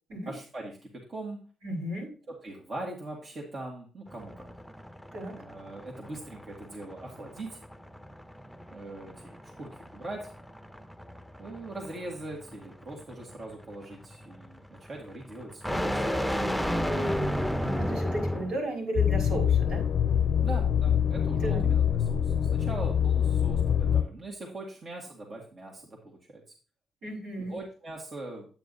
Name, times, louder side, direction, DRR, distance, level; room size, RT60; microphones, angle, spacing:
voice 1, 0.3-1.5 2.3-4.5 5.3-7.6 8.7-10.3 11.4-16.4 20.4-26.2 27.5-28.5, right 2 dB, 50° right, -1 dB, 2.0 m, -41 dB
voice 2, 1.6-2.1 5.1-5.4 17.0-19.9 21.4-21.6 27.0-27.6, right 1 dB, 85° right, -2 dB, 5.2 m, -34 dB
sound 1, 4.1-18.6, equal, ahead, 0.8 m, -34 dB
sound 2, 19.0-24.0, left 8 dB, 70° left, 0.4 m, -25 dB
9.1 x 8.9 x 2.7 m, 0.39 s
supercardioid pair, 60°, 0 cm